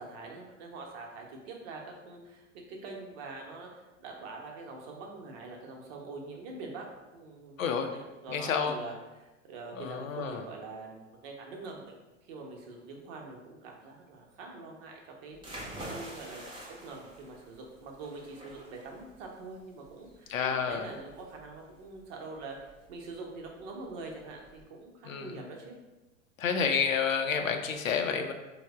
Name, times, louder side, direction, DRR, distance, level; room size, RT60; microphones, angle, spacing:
voice 1, 0.0-6.9 7.1-7.6 7.9-15.6 15.9-16.5 16.8-25.7, right 3 dB, 50° right, 0 dB, 0.8 m, -44 dB
voice 2, 7.6-7.9 8.3-8.8 9.7-10.4 20.3-20.9 25.0-25.4 26.4-28.3, left 6 dB, 85° left, 5 dB, 0.5 m, -29 dB
sound 1, 15.3-24.6, right 1 dB, 10° right, 0.7 m, -48 dB
3.2 x 2.1 x 3.4 m, 1.1 s
hypercardioid pair, 95°, 39 cm